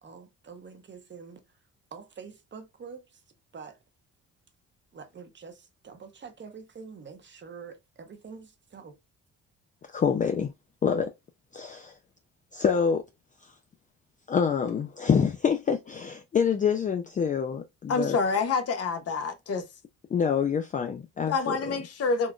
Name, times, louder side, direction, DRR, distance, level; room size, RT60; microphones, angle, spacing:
voice 1, 0.0-1.6 1.9-3.2 3.5-3.8 4.9-9.0, right 5 dB, 40° right, 0.8 m, -46 dB
voice 2, 9.9-10.5 10.8-11.1 11.5-11.9 12.5-13.0 13.4-13.5 14.3-18.2 20.1-21.7, left 6 dB, 25° left, 0.4 m, -26 dB
voice 3, 17.9-19.6 21.3-22.3, left 4 dB, 55° left, 0.7 m, -27 dB
3.7 x 2.4 x 2.3 m
cardioid pair, 90°, 30 cm